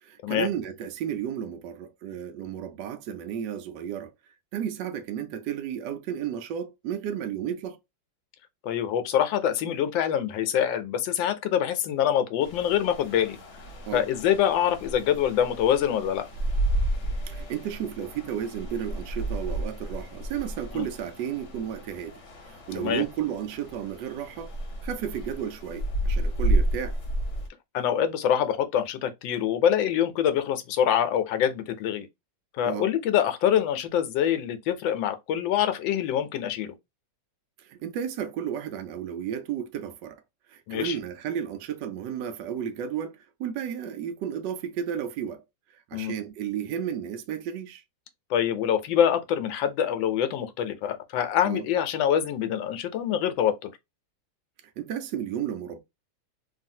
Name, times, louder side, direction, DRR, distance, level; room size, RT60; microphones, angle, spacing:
voice 1, 0.0-4.1 4.5-7.8 13.9-14.1 17.3-22.2 22.5-24.5 24.8-27.0 32.6-32.9 37.6-40.2 40.5-45.4 45.9-47.8 51.4-51.6 54.8-55.8, right 9 dB, 70° right, 1.2 m, -33 dB
voice 2, 8.6-13.4 13.9-16.2 20.7-20.9 22.8-23.0 27.7-32.1 32.6-36.7 40.7-41.0 45.9-46.1 48.3-53.7, left 9 dB, 80° left, 1.3 m, -25 dB
sound 1, 12.4-27.5, right 1 dB, 50° left, 0.9 m, -31 dB
3.2 x 2.4 x 2.6 m
omnidirectional pair, 2.1 m